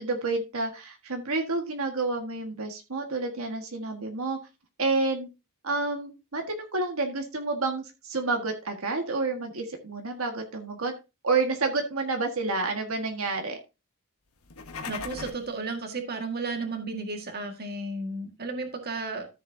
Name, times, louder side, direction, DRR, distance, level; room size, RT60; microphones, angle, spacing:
voice 1, 0.0-4.4 4.8-5.3 5.6-10.9 11.2-13.6, right 3 dB, 70° right, 3 dB, 1.7 m, -29 dB
sound 1, 14.4-15.5, left 5 dB, 80° left, 1.4 m, -38 dB
voice 2, 14.9-19.3, right 3 dB, 45° right, 4 dB, 1.9 m, -33 dB
13.5 x 7.2 x 2.8 m, 0.27 s
head